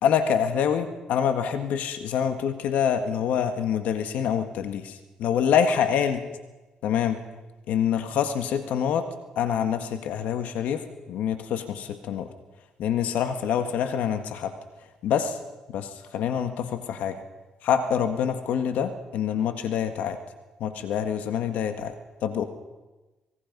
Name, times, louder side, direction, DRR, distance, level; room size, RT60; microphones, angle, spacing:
voice 1, 0.0-6.2 6.8-7.2 7.7-9.1 9.3-12.3 12.8-14.5 15.0-15.4 15.7-17.2 17.6-20.2 20.6-21.9 22.2-22.4, left 8 dB, 80° left, 8 dB, 1.7 m, -26 dB
25.0 x 21.0 x 5.4 m, 1.2 s
cardioid pair, 90°, 3 cm